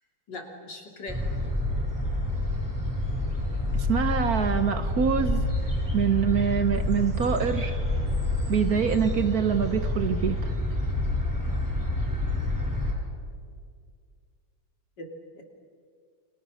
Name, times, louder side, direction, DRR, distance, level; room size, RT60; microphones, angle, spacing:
voice 1, 0.3-1.3 15.0-15.1 15.3-15.4, left 2 dB, 65° left, 3 dB, 3.6 m, -40 dB
sound 1, 1.1-12.9, left 1 dB, 10° right, 4.8 m, -28 dB
voice 2, 3.9-5.4 5.9-7.8 8.5-10.5, right 7 dB, 55° right, 10 dB, 1.4 m, -25 dB
29.5 x 24.0 x 6.4 m, 2.1 s
omnidirectional pair, 2.1 m